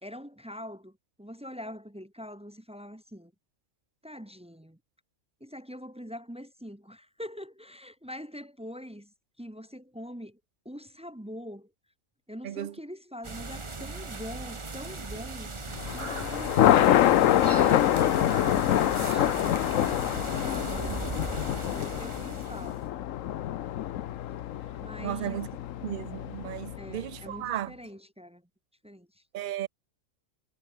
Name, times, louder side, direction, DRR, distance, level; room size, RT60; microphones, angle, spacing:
voice 1, 0.0-3.3 4.0-4.8 5.4-10.4 10.6-11.7 12.3-15.5 15.9-21.1 21.7-22.9 24.8-25.4 26.8-28.4 28.8-29.2, equal, 5° right, 0.6 m, -43 dB
voice 2, 12.4-12.7 20.9-21.1 25.0-25.5 25.8-27.7 29.3-29.7, right 12 dB, 60° right, 0.5 m, -35 dB
sound 1, 13.2-22.9, right 3 dB, 25° right, 1.1 m, -38 dB
Thunder, 15.7-27.1, left 12 dB, 75° left, 1.1 m, -26 dB
omnidirectional pair, 1.4 m